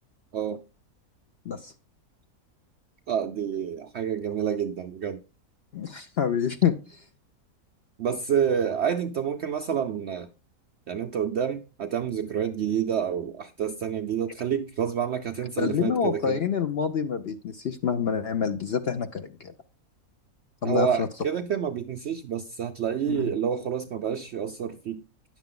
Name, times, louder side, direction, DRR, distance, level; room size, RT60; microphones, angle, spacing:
voice 1, 3.1-5.2 8.0-10.3 10.9-16.4 20.6-25.0, right 8 dB, 70° right, 0.6 m, -28 dB
voice 2, 5.7-6.7 15.6-19.5 20.6-21.1 23.1-23.3, left 7 dB, 55° left, 0.7 m, -27 dB
10.5 x 7.1 x 3.8 m
omnidirectional pair, 1.6 m